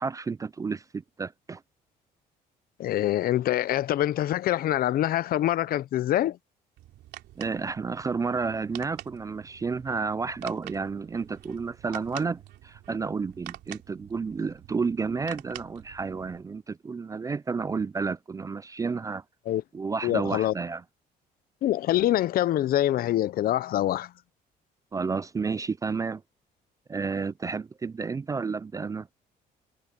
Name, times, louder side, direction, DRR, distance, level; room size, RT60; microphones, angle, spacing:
voice 1, 0.0-1.6 7.4-19.2 19.7-20.8 24.9-26.2 26.9-29.1, right 4 dB, 20° right, 0.4 m, -31 dB
voice 2, 2.8-6.4 19.5-19.6 20.0-20.5 21.6-24.1, left 13 dB, 60° left, 0.8 m, -25 dB
sound 1, 6.8-16.4, right 15 dB, 80° right, 3.0 m, -47 dB
cardioid pair, 110°, 17 cm